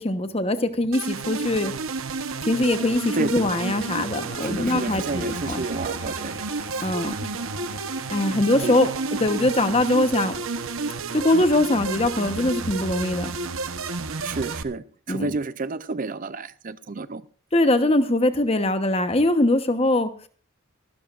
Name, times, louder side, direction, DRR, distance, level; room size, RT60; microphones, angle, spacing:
voice 1, 0.0-1.7 2.4-5.6 6.8-7.3 8.1-8.9 9.2-10.3 11.1-13.3 15.1-15.3 17.5-20.1, left 1 dB, 30° left, 1.1 m, -22 dB
sound 1, 0.9-14.6, right 4 dB, 75° right, 1.1 m, -31 dB
sound 2, 2.5-7.5, left 2 dB, 55° left, 2.6 m, -46 dB
voice 2, 4.4-6.4 8.6-8.8 14.2-17.2, right 3 dB, 40° right, 0.5 m, -30 dB
Wind instrument woodwind instrument, 5.1-10.0, equal, 20° right, 1.5 m, -43 dB
25.0 x 13.0 x 2.5 m
head